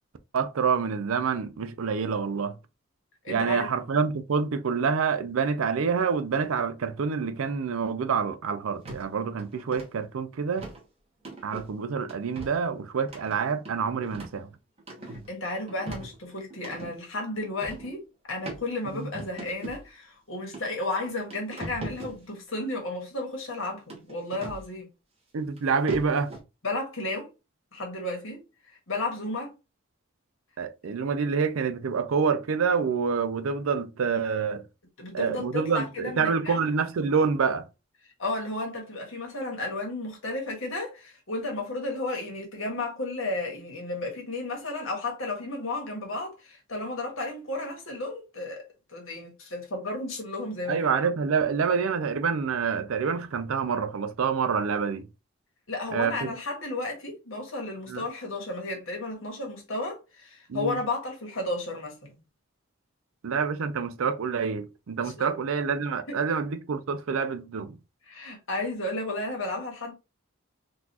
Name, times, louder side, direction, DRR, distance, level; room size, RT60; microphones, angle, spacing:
voice 1, 0.3-2.6 3.3-10.7 11.4-14.5 18.9-19.1 25.3-26.3 30.6-34.6 35.1-37.6 50.7-55.1 55.9-56.3 57.9-58.0 60.5-60.8 63.2-67.8, right 5 dB, 85° right, 0.4 m, -27 dB
voice 2, 3.2-3.7 15.1-18.0 18.3-24.9 26.6-27.3 27.7-29.5 35.0-36.6 38.2-50.9 55.7-62.2 65.0-65.4 66.1-66.2 68.1-69.9, left 2 dB, 75° left, 1.4 m, -33 dB
sound 1, 8.8-9.1 9.4-9.9 10.6-10.8 11.2-11.7 12.1-12.6 13.1-14.4 14.8-15.3 15.7-16.9 17.6-17.9 18.5-18.6 19.1-19.8 20.5-20.6 21.0-22.2 23.9-24.6 25.6-25.7 25.9-26.4, right 1 dB, 30° right, 1.1 m, -39 dB
3.9 x 2.5 x 2.8 m
head